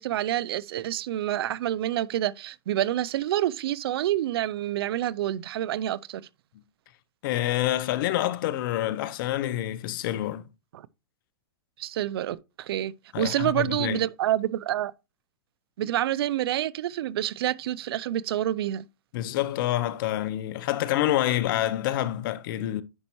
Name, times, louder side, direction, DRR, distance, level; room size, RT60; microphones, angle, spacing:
voice 1, 0.0-6.2 10.7-10.9 11.8-14.9 15.8-18.9, right 12 dB, 70° right, 0.5 m, -28 dB
voice 2, 7.2-10.5 13.1-14.1 15.8-15.9 19.1-22.8, left 13 dB, 55° left, 0.7 m, -27 dB
9.8 x 5.3 x 3.0 m
hypercardioid pair, 130°, 13 cm